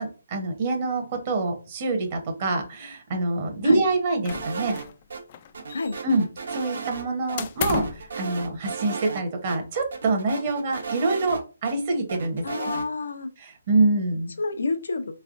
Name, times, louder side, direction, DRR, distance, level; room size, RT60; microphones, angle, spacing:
voice 1, 0.0-4.8 6.0-6.2 6.5-12.7 13.4-14.3, right 2 dB, 35° right, 0.9 m, -25 dB
sound 1, 4.2-5.0 5.3-6.2 7.4-8.1, left 7 dB, 35° left, 0.3 m, -32 dB
sound 2, 4.3-5.2 5.5-7.0 7.3-7.4 7.7-9.2 9.5-9.6 9.9-11.7 12.1-12.9, right 5 dB, 70° right, 1.0 m, -34 dB
voice 2, 12.4-13.3 14.4-15.1, left 3 dB, 80° left, 0.6 m, -28 dB
3.3 x 3.2 x 2.5 m
hypercardioid pair, 160°, 0 cm